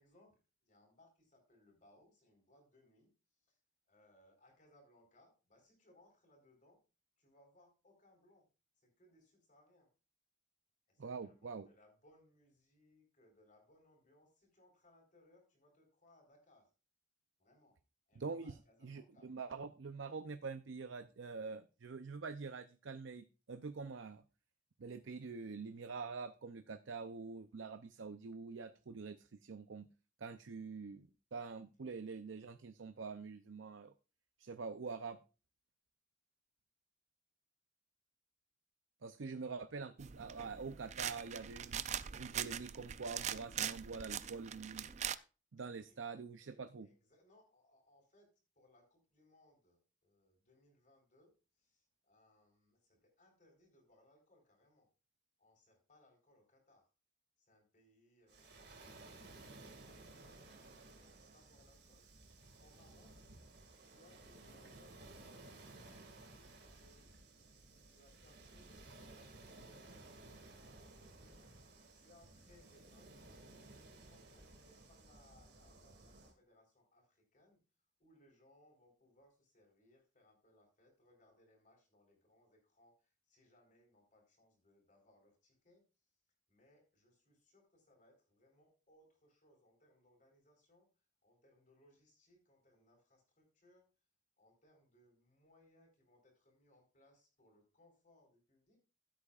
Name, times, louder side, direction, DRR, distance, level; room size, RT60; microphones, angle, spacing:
voice 1, 0.0-3.6 3.9-6.8 7.2-8.5 8.8-9.9 10.9-16.7 17.4-17.8 18.1-19.3 45.8-46.1 46.4-54.9 55.4-56.9 57.4-59.0 59.3-62.1 62.6-63.3 63.8-67.1 67.9-71.5 71.9-77.6 78.0-86.1 86.5-93.9 94.4-98.8, left 1 dB, 40° left, 1 dB, 4.2 m, -69 dB
voice 2, 11.0-11.7 18.2-18.6 18.8-24.2 24.8-29.9 30.2-33.9 34.4-35.2 39.0-41.8 42.2-44.9 45.5-46.9, right 4 dB, 80° right, 10 dB, 0.6 m, -45 dB
sound 1, 40.0-45.2, right 9 dB, 35° right, 0.4 m, -42 dB
Waves surf, 58.3-76.3, right 2 dB, 55° right, 2.1 m, -57 dB
15.5 x 8.4 x 2.4 m, 0.32 s
head